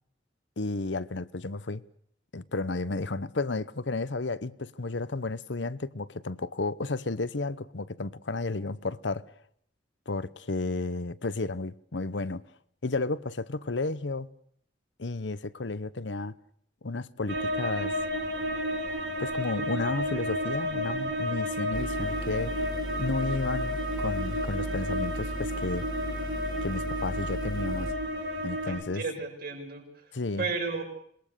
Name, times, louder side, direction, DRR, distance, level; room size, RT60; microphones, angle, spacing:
voice 1, 0.6-1.8 2.3-9.2 10.1-12.4 12.8-14.3 15.0-16.3 16.8-17.9 19.2-22.6 23.0-25.9 26.6-27.9 28.4-29.0 30.1-30.4, left 3 dB, 75° left, 1.0 m, -32 dB
sound 1, 17.3-28.8, equal, 75° right, 3.7 m, -32 dB
sound 2, 21.7-28.0, equal, 25° left, 2.2 m, -36 dB
voice 2, 28.6-29.8 30.4-30.8, right 4 dB, 55° right, 6.2 m, -33 dB
27.0 x 20.5 x 6.8 m
head